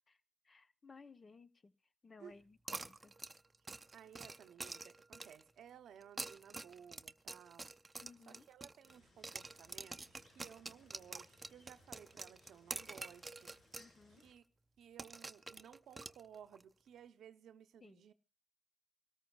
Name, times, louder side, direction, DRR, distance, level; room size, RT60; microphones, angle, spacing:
voice 1, 0.4-1.7 2.0-3.1 8.0-8.5 13.8-14.2 17.8-18.0, left 4 dB, 40° left, 0.8 m, -59 dB
sound 1, 2.7-5.5 6.0-9.0 9.2-13.9 14.2-14.3 15.0-16.6, right 3 dB, 30° right, 0.6 m, -48 dB
voice 2, 3.9-7.7 8.3-13.5 14.1-14.4 14.8-18.1, right 8 dB, 80° right, 0.7 m, -58 dB
sound 2, 8.8-14.3, left 2 dB, 80° left, 3.8 m, -68 dB
25.5 x 13.5 x 2.3 m
cardioid pair, 65°, 0 cm